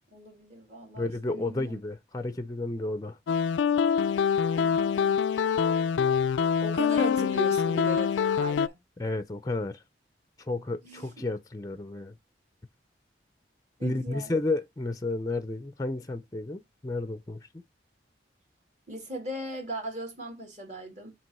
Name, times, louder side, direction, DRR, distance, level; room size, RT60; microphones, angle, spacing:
voice 1, 0.1-1.8 4.5-5.3 6.6-8.8 10.8-11.2 13.8-14.3 18.9-21.1, right 1 dB, 40° right, 2.5 m, -38 dB
voice 2, 1.0-3.2 9.0-9.8 10.4-12.2 13.8-17.6, left 2 dB, 20° left, 0.5 m, -32 dB
sound 1, 3.3-8.7, left 7 dB, 80° left, 0.3 m, -25 dB
7.7 x 3.0 x 4.2 m
head